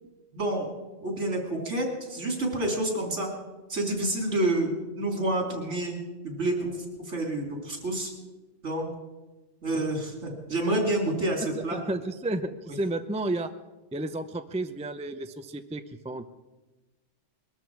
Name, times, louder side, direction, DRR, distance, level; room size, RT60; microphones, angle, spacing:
voice 1, 0.3-0.7 1.0-3.3 3.7-6.0 6.2-6.8 7.1-8.1 8.6-8.9 9.6-11.8, right 1 dB, 70° right, 1 dB, 3.6 m, -28 dB
voice 2, 11.5-13.5 13.9-16.3, right 2 dB, 10° right, 8 dB, 0.5 m, -32 dB
21.5 x 13.0 x 4.7 m, 1.2 s
omnidirectional pair, 1.2 m